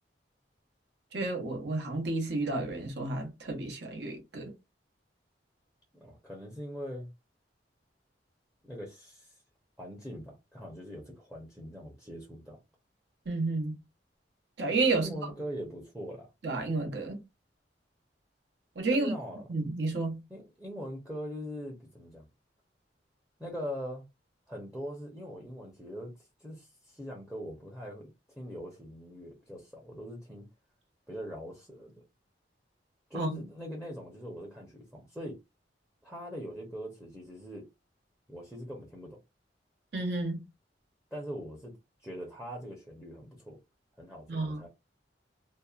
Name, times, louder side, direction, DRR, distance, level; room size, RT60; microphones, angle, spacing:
voice 1, 1.1-4.5 13.3-13.8 14.6-15.1 16.4-17.2 18.8-19.1 19.5-20.2 33.1-33.4 39.9-40.4 44.3-44.7, right 3 dB, 70° right, 0.8 m, -31 dB
voice 2, 6.0-7.1 8.6-9.4 9.8-12.6 14.9-16.3 18.9-19.4 20.3-22.3 23.4-24.1 24.5-26.1 26.4-28.1 28.4-30.5 31.1-32.0 33.1-35.4 36.0-37.7 38.3-39.2 41.1-41.7 42.0-43.6 44.0-44.7, equal, 5° right, 0.6 m, -41 dB
2.7 x 2.1 x 2.3 m
head